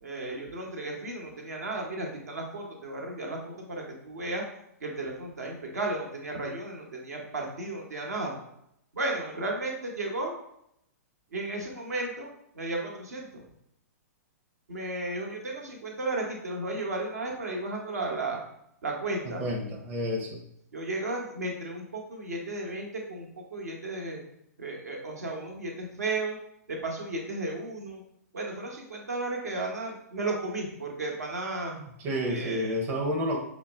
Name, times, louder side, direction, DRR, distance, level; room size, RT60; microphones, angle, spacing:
voice 1, 0.0-4.4 4.8-8.3 8.9-10.4 11.3-13.4 14.7-18.4 18.8-19.5 20.7-24.2 24.6-26.4 26.7-28.0 28.3-31.7 32.3-32.8, right 2 dB, 70° right, 0 dB, 1.1 m, -34 dB
voice 2, 19.2-20.4 32.0-33.4, equal, 25° right, -1 dB, 0.7 m, -30 dB
5.6 x 2.0 x 3.5 m, 0.75 s
figure-of-eight pair, 115°, 9 cm